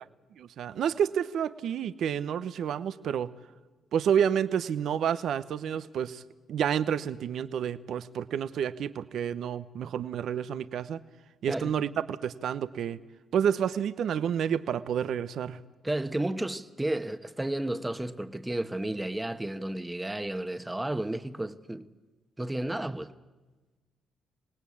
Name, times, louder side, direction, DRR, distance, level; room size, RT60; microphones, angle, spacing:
voice 1, 0.4-3.3 3.9-6.2 6.5-11.0 11.4-13.0 13.3-15.6, right 8 dB, 70° right, 0.9 m, -29 dB
voice 2, 15.8-21.9 22.4-23.1, right 1 dB, 10° right, 1.2 m, -32 dB
26.5 x 18.5 x 8.6 m
cardioid pair, 90°, 0 cm